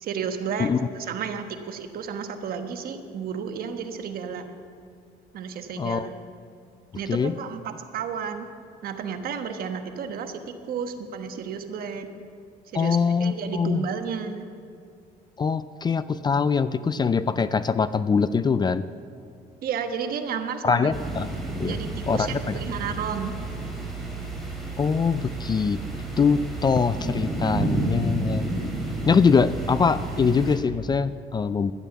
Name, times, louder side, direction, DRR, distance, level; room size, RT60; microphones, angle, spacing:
voice 1, 0.0-4.4 5.3-6.1 6.9-8.5 8.8-12.1 12.7-14.5 19.6-20.9 21.6-23.3, right 6 dB, 60° right, 6 dB, 1.2 m, -32 dB
voice 2, 5.8-6.1 7.1-7.3 12.7-13.8 15.4-18.8 20.6-21.3 21.5-21.8 22.1-22.6 24.8-25.8 26.2-28.6 29.1-31.7, left 5 dB, 25° left, 14 dB, 0.4 m, -23 dB
sound 1, 20.9-30.6, right 2 dB, ahead, 3.6 m, -31 dB
12.5 x 10.0 x 7.0 m, 2.4 s
cardioid pair, 110°, 17 cm